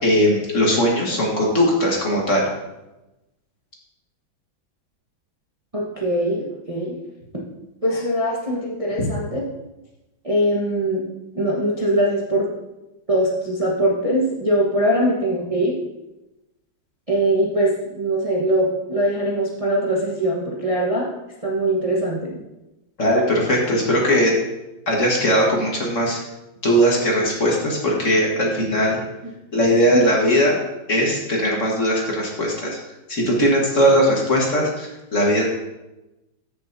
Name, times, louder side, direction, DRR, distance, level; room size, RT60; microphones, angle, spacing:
voice 1, 0.0-2.5 23.0-24.3 24.9-26.2 26.6-29.0 29.5-30.6 30.9-32.8 33.1-35.4, equal, 40° left, -2 dB, 1.7 m, -19 dB
voice 2, 5.7-7.0 7.8-9.4 10.2-11.0 11.3-12.5 13.1-15.8 17.1-21.1 21.4-22.2 29.9-30.0, right 1 dB, 20° right, -4 dB, 1.0 m, -21 dB
13.5 x 6.7 x 2.7 m, 0.98 s
omnidirectional pair, 2.2 m